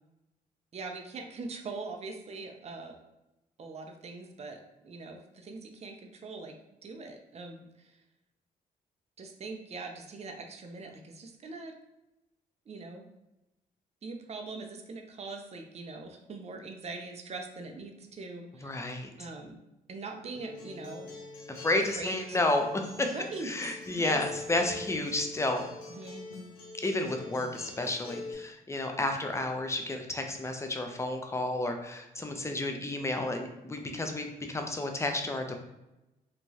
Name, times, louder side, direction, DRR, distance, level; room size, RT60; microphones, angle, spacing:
voice 1, 0.7-3.0 3.6-6.5 6.8-8.0 9.2-11.7 12.7-13.1 14.0-18.9 19.2-19.6 19.9-21.1 22.0-22.4 23.0-24.2 25.9-26.3, right 3 dB, 35° right, 3 dB, 0.5 m, -42 dB
voice 2, 18.6-19.1 21.5-23.1 23.4-25.7 26.8-35.5, left 2 dB, 15° left, 4 dB, 0.5 m, -31 dB
Acoustic guitar, 20.3-28.3, left 3 dB, 90° left, 0.5 m, -44 dB
2.9 x 2.2 x 2.7 m, 0.95 s
supercardioid pair, 50°, 18 cm